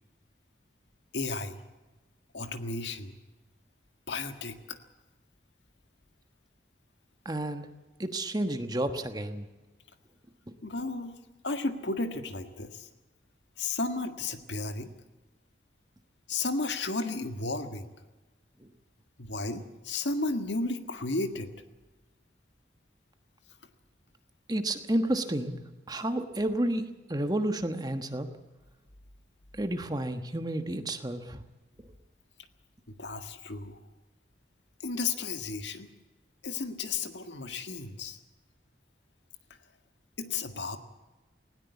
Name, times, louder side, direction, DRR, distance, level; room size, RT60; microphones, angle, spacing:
voice 1, 1.1-1.6 2.3-3.1 4.1-4.8 10.6-11.1 11.4-12.9 13.6-14.9 16.3-17.9 19.2-21.5 32.9-33.8 34.8-35.9 36.4-38.2 40.2-40.8, left 3 dB, 80° left, 8 dB, 1.7 m, -33 dB
voice 2, 7.2-7.7 8.0-9.5 18.6-18.7 24.5-25.6 25.9-28.3 29.5-31.4, right 1 dB, 20° right, 8 dB, 1.3 m, -31 dB
19.5 x 17.5 x 8.3 m, 1.1 s
head